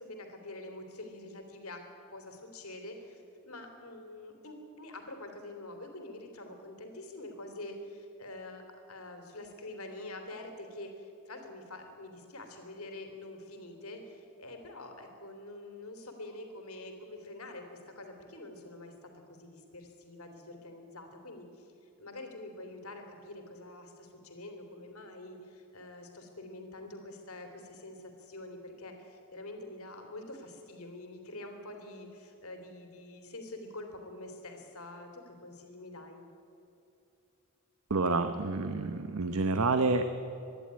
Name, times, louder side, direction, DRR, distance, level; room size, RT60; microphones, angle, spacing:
voice 1, 0.0-1.8 2.1-21.7 22.0-36.3, left 2 dB, 90° left, 4 dB, 3.1 m, -46 dB
voice 2, 37.9-40.0, right 3 dB, 80° right, 9 dB, 0.9 m, -28 dB
25.0 x 11.0 x 9.6 m, 2.7 s
head